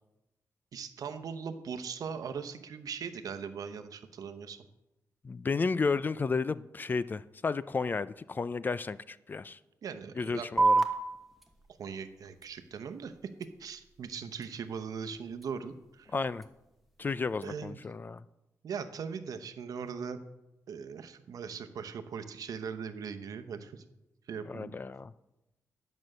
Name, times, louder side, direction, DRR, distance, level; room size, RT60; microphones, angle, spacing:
voice 1, 0.7-4.6 9.8-10.5 11.8-13.1 13.6-16.1 17.4-17.8 18.6-20.2 20.7-23.8 24.3-24.7, right 6 dB, 75° right, 9 dB, 0.8 m, -40 dB
voice 2, 5.2-9.6 10.2-10.8 16.1-16.5 17.0-18.2 24.5-25.1, left 4 dB, 30° left, 16 dB, 0.3 m, -32 dB
sound 1, 10.6-17.6, right 3 dB, ahead, 1.1 m, -34 dB
11.0 x 6.2 x 6.5 m, 0.95 s
wide cardioid pair, 120°, 6 cm